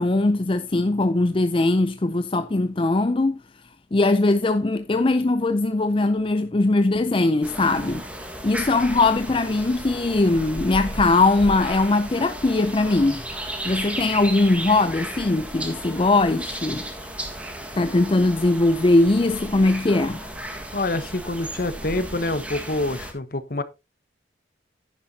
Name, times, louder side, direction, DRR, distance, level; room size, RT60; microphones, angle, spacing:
voice 1, 0.0-3.4 3.9-8.0 8.4-13.2 13.6-16.9 17.8-20.2, left 2 dB, 30° left, 0.5 m, -20 dB
sound 1, 7.4-23.1, right 1 dB, 5° right, 1.7 m, -34 dB
voice 2, 20.7-23.6, left 2 dB, 50° left, 1.0 m, -26 dB
10.5 x 10.0 x 2.8 m
head